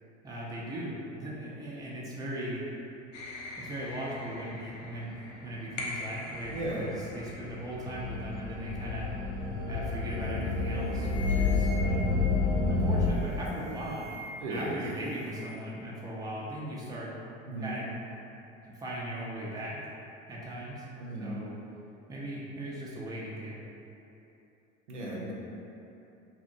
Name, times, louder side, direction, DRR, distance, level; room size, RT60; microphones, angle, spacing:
voice 1, 0.2-2.6 3.6-5.1 5.4-9.1 9.7-12.1 12.7-14.1 14.5-17.1 17.6-17.9 18.6-19.8 20.3-20.9 21.2-21.5 22.1-23.6, right 1 dB, 10° right, -6 dB, 0.5 m, -38 dB
sound 1, 3.1-5.0 5.8-13.1, left 3 dB, 85° left, 0.5 m, -31 dB
voice 2, 6.5-6.8 14.4-14.8 17.5-17.8 21.0-21.4 24.9-25.3, right 1 dB, 80° right, -4 dB, 0.6 m, -35 dB
sound 2, 10.1-10.3 10.6-12.3 13.1-14.6 14.8-15.6, left 2 dB, 30° left, 0.7 m, -45 dB
2.8 x 2.6 x 2.5 m, 2.9 s
hypercardioid pair, 75°, 36 cm